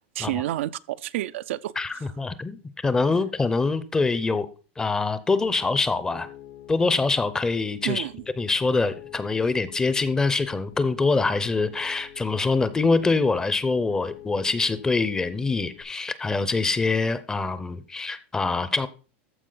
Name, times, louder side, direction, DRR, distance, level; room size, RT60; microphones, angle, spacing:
voice 1, 0.1-2.1 7.8-8.2, right 14 dB, 80° right, 0.5 m, -30 dB
voice 2, 1.8-4.5 4.8-6.3 6.7-8.0 8.4-18.9, left 3 dB, 10° left, 0.6 m, -24 dB
Piano, 5.5-15.8, left 11 dB, 90° left, 2.4 m, -47 dB
14.0 x 4.8 x 3.9 m
supercardioid pair, 160°, 7 cm